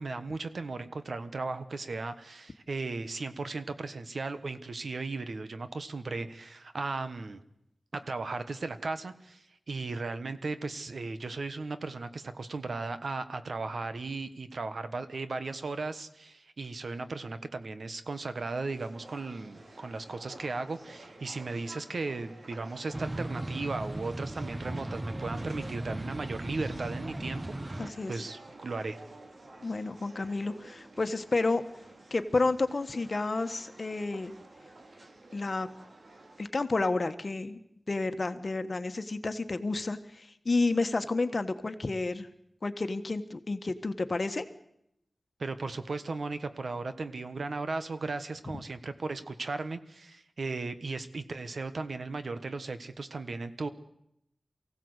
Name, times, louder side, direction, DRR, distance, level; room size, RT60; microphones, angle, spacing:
voice 1, 0.0-7.4 7.9-29.0 45.4-53.7, right 3 dB, 75° right, 11 dB, 1.3 m, -36 dB
sound 1, 18.7-36.5, right 2 dB, 60° right, 2.6 m, -51 dB
sound 2, 22.9-27.9, right 1 dB, 25° right, 1.1 m, -37 dB
voice 2, 27.8-28.2 29.6-31.6 32.1-34.3 35.3-35.7 36.4-37.6 37.9-42.3 42.6-44.4, left 3 dB, 50° left, 9 dB, 1.4 m, -30 dB
23.5 x 16.0 x 8.1 m, 0.80 s
wide cardioid pair, 70°, 0 cm